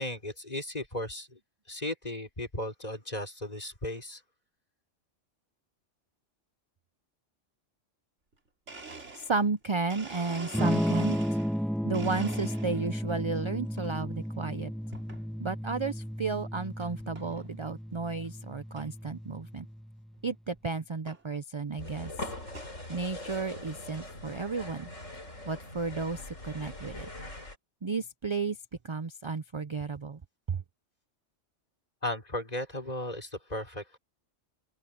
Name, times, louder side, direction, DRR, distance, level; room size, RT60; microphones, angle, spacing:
voice 1, 0.0-1.4 1.7-4.2 32.0-34.0, left 1 dB, 30° left, 4.4 m, -36 dB
Domestic sounds home sounds, 8.3-8.4 8.7-11.6 11.9-13.0 13.4-13.9 14.9-15.2 15.8-15.9 16.8-16.9 17.2-17.5 17.9-18.0 18.2-18.3 18.8-18.9 20.2-20.3 21.1-21.2 21.9-22.8, right 3 dB, 70° right, 3.2 m, -45 dB
voice 2, 9.2-11.2 11.8-14.7 15.4-19.7 20.2-22.1 22.9-24.9 25.5-27.1 27.8-28.6 28.8-30.2 30.5-30.6, right 4 dB, 35° right, 0.5 m, -33 dB
Electric guitar / Strum, 10.5-20.3, equal, ahead, 1.2 m, -33 dB
sound 1, 21.8-27.6, left 1 dB, 85° left, 6.2 m, -42 dB
open air
omnidirectional pair, 1.3 m